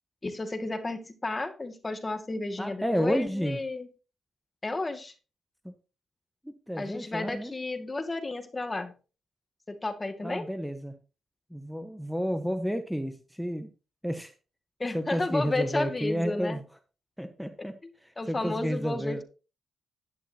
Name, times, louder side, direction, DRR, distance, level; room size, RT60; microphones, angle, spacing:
voice 1, 0.2-3.9 4.6-5.1 6.8-8.9 9.7-10.5 14.8-16.6 17.6-17.7 18.2-19.2, left 2 dB, 25° left, 2.1 m, -32 dB
voice 2, 2.6-3.6 5.6-5.7 6.4-7.5 10.2-11.0 11.5-13.7 14.0-14.3 14.9-16.6 17.2-17.7 18.0-19.2, equal, ahead, 1.2 m, -31 dB
11.0 x 10.5 x 2.9 m
cardioid pair, 70°, 0 cm